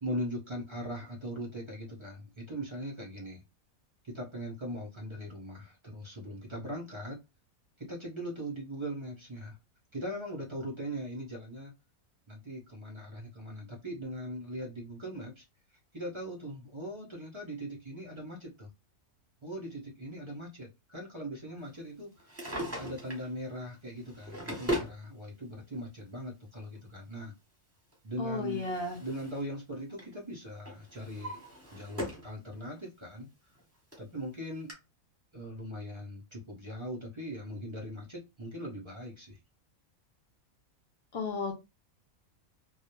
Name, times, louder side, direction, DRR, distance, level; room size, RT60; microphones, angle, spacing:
voice 1, 0.0-3.4 4.0-7.2 7.8-9.5 9.9-11.7 12.3-15.4 15.9-18.7 19.4-22.1 22.8-27.3 28.0-28.6 29.0-31.4 31.7-33.3 34.0-34.7 35.3-39.4, equal, 50° right, 0.3 m, -40 dB
Drawer open or close, 22.2-23.3 24.0-25.0 26.1-26.2 27.9-29.5 29.8-30.1 30.7-32.3 32.8-32.9 33.6-33.7 33.9-34.0 34.7-34.8, equal, 15° right, 0.7 m, -38 dB
voice 2, 28.2-29.0 41.1-41.5, left 3 dB, 60° left, 0.7 m, -33 dB
2.3 x 2.0 x 2.9 m
omnidirectional pair, 1.4 m